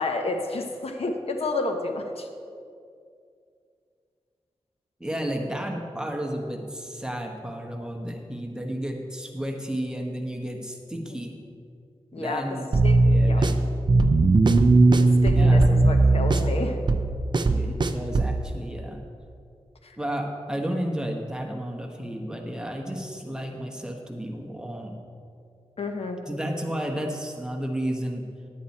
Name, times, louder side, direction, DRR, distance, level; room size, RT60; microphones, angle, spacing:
voice 1, 0.0-2.3 11.1-11.2 12.1-12.4 12.8-13.4 15.0-16.8 19.8-20.0 25.8-26.2, left 3 dB, 70° left, 4 dB, 0.9 m, -30 dB
voice 2, 5.0-11.4 12.1-12.7 13.0-13.6 15.3-15.7 17.4-19.0 20.0-25.0 26.3-28.3, equal, 5° right, 1 dB, 1.2 m, -32 dB
sound 1, 12.7-18.4, right 2 dB, 45° right, 0.6 m, -19 dB
10.5 x 8.9 x 4.2 m, 2.4 s
wide cardioid pair, 85°, 11 cm